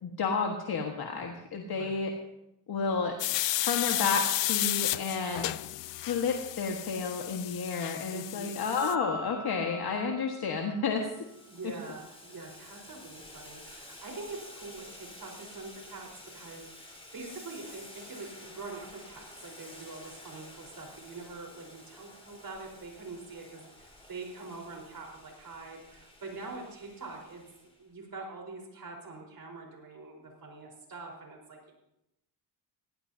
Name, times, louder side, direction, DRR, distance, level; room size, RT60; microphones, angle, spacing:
voice 1, 0.0-2.1 2.7-3.1 3.6-5.5 6.0-11.1, left 5 dB, 55° left, 1 dB, 1.6 m, -31 dB
sound 1, 3.2-8.9, left 16 dB, 75° left, 0.6 m, -32 dB
voice 2, 8.1-8.5 11.5-31.7, right 3 dB, 50° right, 1 dB, 4.4 m, -44 dB
sound 2, 8.8-11.1, left 3 dB, 40° left, 2.0 m, -41 dB
Boiling, 11.0-27.8, left 1 dB, 15° left, 4.2 m, -51 dB
18.0 x 17.5 x 2.8 m, 0.86 s
cardioid pair, 95°, 44 cm